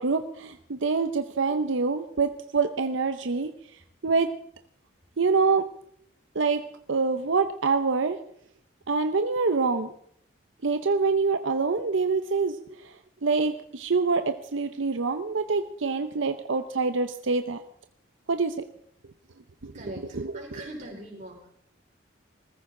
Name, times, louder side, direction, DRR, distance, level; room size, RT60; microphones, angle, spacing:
voice 1, 0.0-3.5 4.0-4.3 5.2-5.6 6.3-6.6 6.9-8.2 8.9-9.9 10.6-12.6 13.2-17.6 18.3-18.5 19.6-19.7 20.1-20.3, right 4 dB, 85° right, 9 dB, 0.8 m, -25 dB
voice 2, 19.7-21.5, right 1 dB, 40° right, -1 dB, 4.9 m, -41 dB
20.5 x 14.5 x 3.8 m, 0.67 s
head